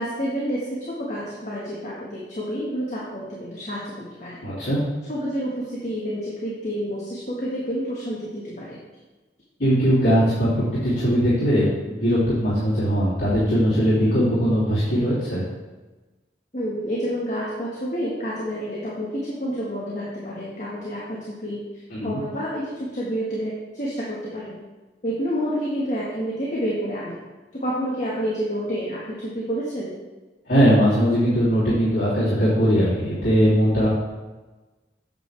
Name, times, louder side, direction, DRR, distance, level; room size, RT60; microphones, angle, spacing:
voice 1, 0.0-4.4 5.1-8.8 16.5-21.6 22.0-24.6 25.0-27.2 27.6-29.9, equal, 40° left, -6 dB, 1.6 m, -29 dB
voice 2, 4.4-4.8 9.6-15.4 21.9-22.2 30.5-33.9, equal, 75° left, -13 dB, 3.0 m, -20 dB
9.0 x 7.2 x 3.4 m, 1.2 s
head